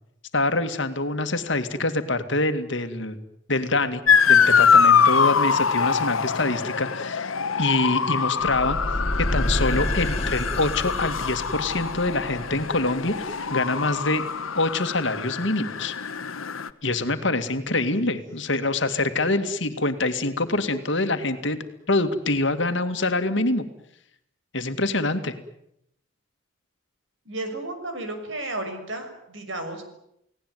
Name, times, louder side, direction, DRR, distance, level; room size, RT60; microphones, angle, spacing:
voice 1, 0.3-3.2 3.5-7.3 7.6-8.8 9.2-14.2 14.5-15.9 16.8-21.6 21.9-23.7 24.5-25.3, left 2 dB, 60° left, 8 dB, 2.2 m, -25 dB
Motor vehicle (road) / Siren, 4.1-16.7, left 6 dB, 90° left, 1.2 m, -23 dB
sound 1, 8.4-13.5, left 1 dB, 30° left, 3.1 m, -29 dB
voice 2, 27.2-29.8, right 2 dB, 65° right, 7 dB, 6.2 m, -33 dB
29.5 x 18.5 x 9.4 m, 0.79 s
head